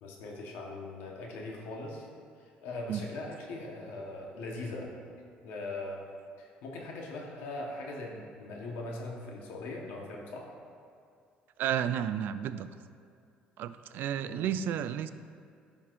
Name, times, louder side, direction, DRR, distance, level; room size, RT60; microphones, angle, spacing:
voice 1, 0.0-2.1 2.4-4.9 5.4-6.0 6.4-10.5 14.3-14.5, left 2 dB, 85° left, -1 dB, 1.2 m, -40 dB
voice 2, 11.6-12.7 13.6-15.1, right 9 dB, 65° right, 12 dB, 0.3 m, -32 dB
11.0 x 5.7 x 2.6 m, 2.4 s
cardioid pair, 100°, 4 cm